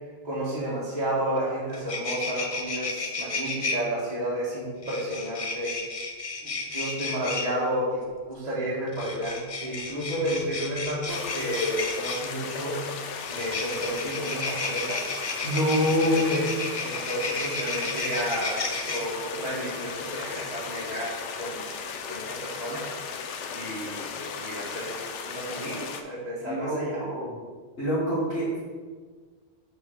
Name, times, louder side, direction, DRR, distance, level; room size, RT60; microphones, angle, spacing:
voice 1, 0.2-5.8 6.4-12.9 13.3-15.0 15.8-16.5 16.8-21.7 22.1-22.9 23.5-27.0, equal, 35° right, -8 dB, 1.5 m, -32 dB
sound 1, 1.4-1.5 1.7-3.8 4.8-7.5 8.9-12.3 13.2-19.0, left 3 dB, 40° left, 0.6 m, -32 dB
sound 2, 11.1-26.0, left 6 dB, 90° left, 0.9 m, -36 dB
voice 2, 15.4-16.4 26.4-27.3 27.8-28.6, equal, 65° left, -12 dB, 2.1 m, -25 dB
6.1 x 4.3 x 4.8 m, 1.5 s
omnidirectional pair, 1.2 m